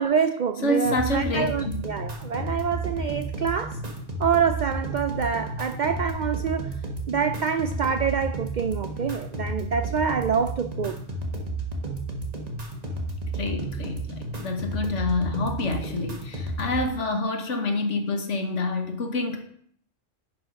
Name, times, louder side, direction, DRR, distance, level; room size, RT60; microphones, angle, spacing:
voice 1, 0.0-3.8 4.2-6.8 7.1-11.0, right 6 dB, 65° right, 0.4 m, -26 dB
voice 2, 0.6-1.8 13.3-19.4, left 2 dB, 70° left, 1.7 m, -27 dB
sound 1, 0.8-16.9, right 2 dB, 30° right, 1.5 m, -32 dB
10.5 x 6.2 x 5.2 m
omnidirectional pair, 1.3 m